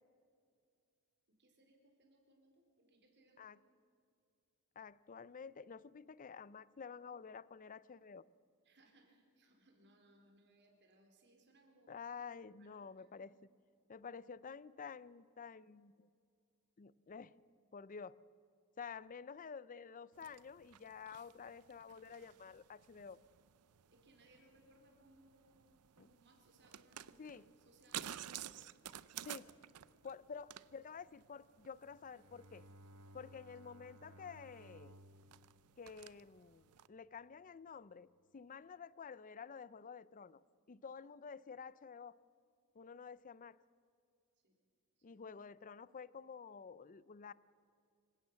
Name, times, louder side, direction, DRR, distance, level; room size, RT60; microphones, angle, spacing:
voice 1, 1.3-3.5 8.6-12.0 12.4-13.3 23.9-28.5 44.4-44.6 45.0-45.2, right 1 dB, 50° right, 2 dB, 4.2 m, -68 dB
voice 2, 4.8-8.2 11.9-13.3 13.9-16.1 16.8-17.3 17.7-18.2 18.8-23.2 26.0-26.1 27.2-27.4 29.2-29.5 30.0-32.7 33.1-35.0 35.8-40.4 40.7-42.2 42.7-43.6 45.0-47.3, left 6 dB, 35° left, 19 dB, 0.5 m, -50 dB
sound 1, 20.1-36.9, right 11 dB, 90° right, 0.6 m, -54 dB
Bowed string instrument, 31.8-37.0, right 1 dB, 75° right, 1.0 m, -61 dB
25.5 x 16.5 x 7.6 m, 2.4 s
head